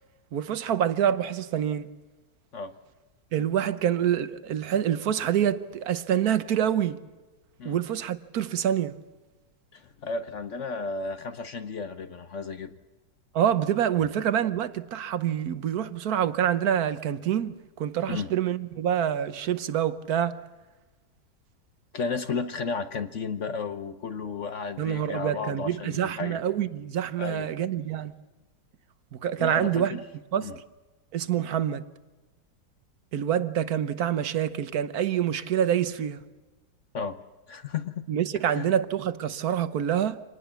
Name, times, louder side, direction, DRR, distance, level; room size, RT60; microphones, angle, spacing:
voice 1, 0.3-1.9 3.3-7.0 7.6-9.0 13.3-20.4 24.8-28.1 29.1-30.0 30.3-30.5 31.1-31.9 33.1-36.2 38.1-40.2, right 9 dB, 60° right, 1.3 m, -26 dB
voice 2, 9.7-12.8 14.0-14.1 18.1-18.3 21.9-26.4 27.2-27.5 29.4-30.0 30.4-30.6 36.9-37.2 37.5-38.0 38.5-38.7, left 4 dB, 50° left, 1.0 m, -33 dB
25.5 x 19.5 x 7.1 m
omnidirectional pair, 2.0 m